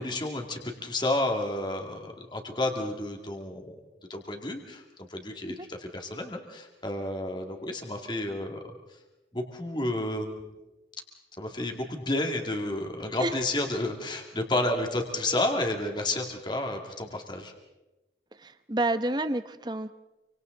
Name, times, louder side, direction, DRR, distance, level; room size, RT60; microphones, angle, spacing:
voice 1, 0.0-3.8 4.1-8.6 9.3-10.5 11.4-17.5, left 1 dB, 25° left, 3 dB, 2.6 m, -31 dB
voice 2, 18.4-19.9, right 2 dB, 25° right, 11 dB, 0.9 m, -29 dB
28.0 x 25.5 x 4.1 m, 1.0 s
head